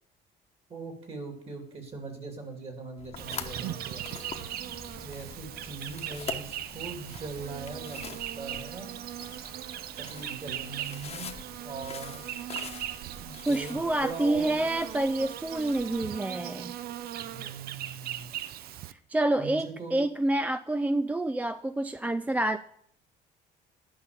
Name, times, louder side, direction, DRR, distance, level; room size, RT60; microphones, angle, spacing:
voice 1, 0.7-4.0 5.0-8.1 8.3-8.9 10.0-11.3 11.6-12.2 13.2-14.7 17.3-18.3 19.4-20.0, right 4 dB, 35° right, 3 dB, 2.8 m, -40 dB
sound 1, 3.0-16.1, left 6 dB, 40° left, 1.1 m, -45 dB
Insect, 3.2-18.9, right 12 dB, 65° right, 0.5 m, -39 dB
voice 2, 13.5-16.7 18.9-22.6, right 1 dB, 10° right, 13 dB, 0.3 m, -28 dB
10.5 x 5.6 x 6.7 m, 0.68 s
cardioid pair, 110°, 17 cm